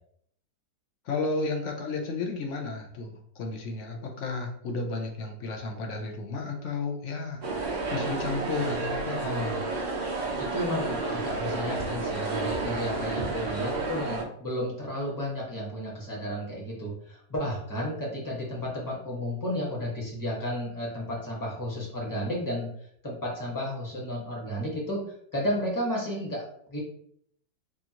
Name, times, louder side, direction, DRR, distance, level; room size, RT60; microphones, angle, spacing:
voice 1, 1.1-3.1 3.4-9.2, left 3 dB, 55° left, 2 dB, 0.8 m, -33 dB
sound 1, 7.4-14.2, right 3 dB, 60° right, 0.4 m, -31 dB
voice 2, 9.2-9.6 10.4-22.7 23.0-25.0 25.3-26.8, equal, 15° left, -3 dB, 1.0 m, -32 dB
4.9 x 2.6 x 2.9 m, 0.67 s
omnidirectional pair, 1.9 m